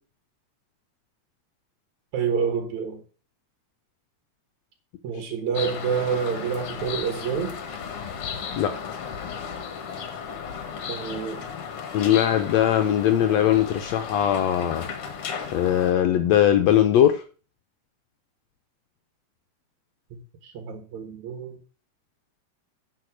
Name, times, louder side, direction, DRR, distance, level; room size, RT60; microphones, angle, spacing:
voice 1, 2.1-3.0 5.0-7.6 10.9-11.4 20.1-21.6, right 6 dB, 75° right, 6 dB, 2.8 m, -28 dB
sound 1, 5.5-15.9, left 6 dB, 55° left, 2.1 m, -35 dB
voice 2, 11.9-14.9 15.5-17.2, left 11 dB, 75° left, 8 dB, 1.9 m, -20 dB
10.5 x 5.4 x 6.3 m, 0.37 s
omnidirectional pair, 3.3 m